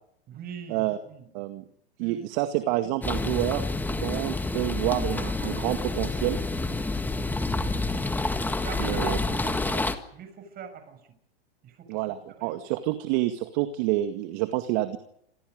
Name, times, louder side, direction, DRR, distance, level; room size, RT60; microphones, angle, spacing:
voice 1, 0.3-1.3 2.0-2.2 8.6-11.0 11.6-12.0 12.4-12.6, right 6 dB, 30° right, 8 dB, 6.8 m, -41 dB
voice 2, 2.0-6.4 8.8-9.2 11.9-15.0, right 15 dB, 45° right, 8 dB, 2.0 m, -28 dB
sound 1, 3.0-9.9, left 2 dB, 5° left, 1.7 m, -28 dB
29.5 x 26.5 x 5.3 m, 0.73 s
hypercardioid pair, 135°, 32 cm